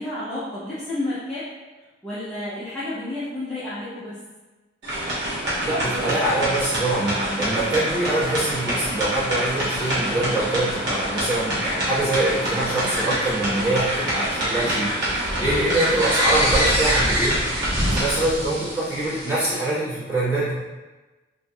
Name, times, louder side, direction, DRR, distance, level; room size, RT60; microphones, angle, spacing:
voice 1, 0.0-1.5 2.0-4.2 17.7-18.0, left 1 dB, 5° left, -13 dB, 0.6 m, -31 dB
sound 1, 4.8-19.6, equal, 55° right, 1.3 m, -25 dB
voice 2, 5.6-17.4 17.9-20.5, right 1 dB, 15° right, -11 dB, 1.3 m, -24 dB
4.3 x 2.6 x 2.3 m, 1.2 s
head